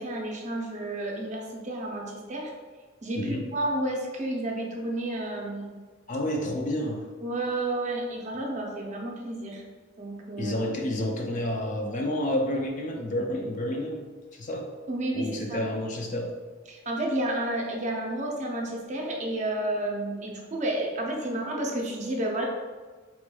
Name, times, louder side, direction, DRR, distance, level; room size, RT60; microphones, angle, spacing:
voice 1, 0.0-2.5 3.0-5.7 7.2-9.6 10.0-10.5 14.9-15.7 16.7-22.5, right 1 dB, 35° right, 0 dB, 0.5 m, -31 dB
voice 2, 3.2-3.5 6.1-7.1 10.4-14.1 14.3-14.7 15.1-16.3, left 1 dB, 40° left, 2 dB, 0.4 m, -30 dB
4.1 x 3.0 x 2.2 m, 1.4 s
head